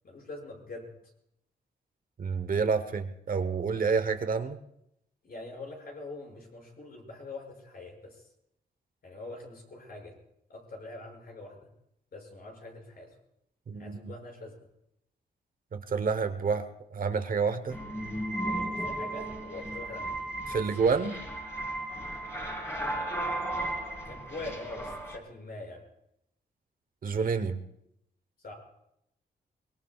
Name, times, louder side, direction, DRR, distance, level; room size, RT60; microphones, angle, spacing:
voice 1, 0.0-0.9 5.2-8.2 9.0-10.1 10.5-11.7 12.1-13.1 13.7-14.7 18.4-20.2 20.5-20.6 22.7-23.3 24.0-25.8 28.4-28.5, left 2 dB, 60° left, 0 dB, 6.6 m, -44 dB
voice 2, 2.2-4.6 13.7-14.1 15.7-17.8 20.5-21.2 27.0-27.6, right 5 dB, 55° right, 9 dB, 1.1 m, -29 dB
sound 1, 17.7-25.2, right 1 dB, 15° left, 3.9 m, -35 dB
24.0 x 21.5 x 2.4 m, 0.77 s
cardioid pair, 100°, 18 cm